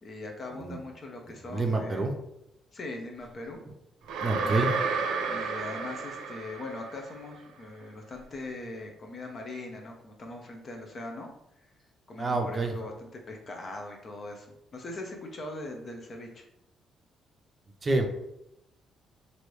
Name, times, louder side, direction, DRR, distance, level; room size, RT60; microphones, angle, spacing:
voice 1, 0.0-2.1 2.7-3.6 4.4-4.7 5.3-11.3 12.1-16.4, left 2 dB, 45° left, 2 dB, 0.7 m, -41 dB
voice 2, 1.4-2.1 4.2-4.7 12.2-12.7 17.8-18.1, right 2 dB, 35° right, 4 dB, 0.5 m, -27 dB
sound 1, 4.1-7.2, right 4 dB, 90° right, 0.4 m, -31 dB
3.1 x 2.6 x 3.1 m, 0.83 s
cardioid pair, 90°, 0 cm